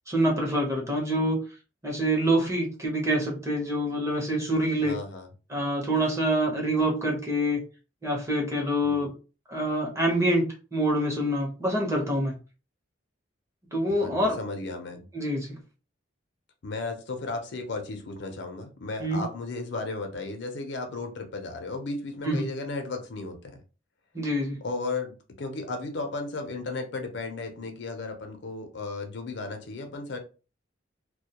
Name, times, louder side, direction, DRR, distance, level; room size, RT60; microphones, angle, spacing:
voice 1, 0.1-1.4 1.8-5.0 5.5-7.6 8.0-9.1 9.5-12.4 13.7-14.4 15.1-15.6 19.0-19.2 22.2-22.5 24.1-24.6, right 1 dB, 15° right, 0.7 m, -26 dB
voice 2, 4.8-5.3 8.8-9.1 13.9-15.1 16.6-23.6 24.6-30.2, left 3 dB, 65° left, 0.5 m, -35 dB
2.2 x 2.1 x 2.8 m
head